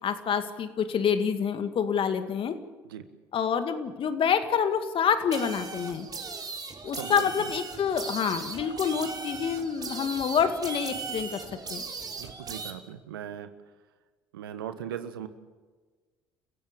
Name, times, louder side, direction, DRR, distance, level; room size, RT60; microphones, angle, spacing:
voice 1, 0.0-2.5 3.3-6.1 6.8-11.4 11.7-11.8, left 7 dB, 50° left, 8 dB, 2.2 m, -27 dB
sound 1, 5.3-12.7, right 4 dB, 35° right, 3.3 m, -38 dB
voice 2, 6.9-7.3 12.2-13.5 14.3-15.3, right 10 dB, 80° right, 11 dB, 1.4 m, -38 dB
30.0 x 16.0 x 7.4 m, 1.4 s
hypercardioid pair, 55°, 12 cm